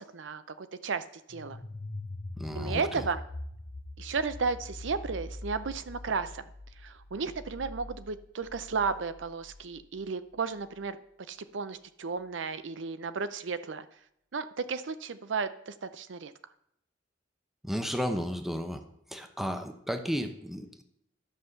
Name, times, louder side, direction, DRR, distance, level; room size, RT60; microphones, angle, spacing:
voice 1, 0.0-1.6 2.5-3.2 4.0-6.5 6.8-11.0 11.3-13.9 14.3-16.3, right 5 dB, 70° right, 12 dB, 0.6 m, -34 dB
sound 1, 1.3-10.0, left 1 dB, 35° left, 0.8 m, -43 dB
voice 2, 2.4-3.0 17.6-18.8 19.1-20.8, equal, ahead, 7 dB, 0.9 m, -33 dB
12.0 x 5.7 x 6.7 m, 0.74 s
head